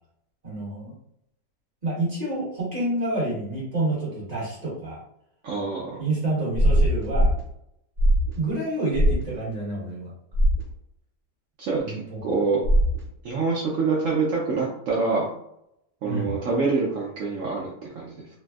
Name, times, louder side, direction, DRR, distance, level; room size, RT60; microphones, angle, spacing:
voice 1, 0.4-0.9 1.8-5.0 6.0-7.3 8.4-10.1 11.8-12.2 16.0-16.4, right 2 dB, 30° right, -7 dB, 1.0 m, -28 dB
voice 2, 5.4-6.0 11.6-12.6 13.2-15.3 16.0-18.1, right 4 dB, 80° right, -4 dB, 0.7 m, -26 dB
sound 1, 6.5-7.4 8.0-8.4 8.9-9.2 10.3-10.6 12.6-13.0, equal, 55° right, 1.1 m, -20 dB
3.3 x 2.0 x 2.3 m, 0.78 s
omnidirectional pair, 1.9 m